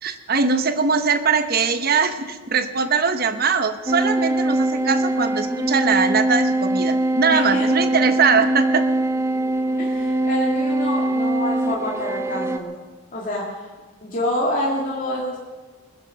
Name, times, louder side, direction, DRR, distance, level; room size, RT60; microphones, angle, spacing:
voice 1, 0.0-8.9, right 5 dB, 45° right, 9 dB, 1.0 m, -21 dB
sound 1, 3.9-12.6, right 1 dB, 10° right, 0.6 m, -22 dB
voice 2, 7.3-7.8 9.8-12.7 13.1-13.7 14.0-15.4, left 1 dB, 40° left, -4 dB, 2.0 m, -27 dB
20.5 x 10.0 x 6.4 m, 1.4 s
head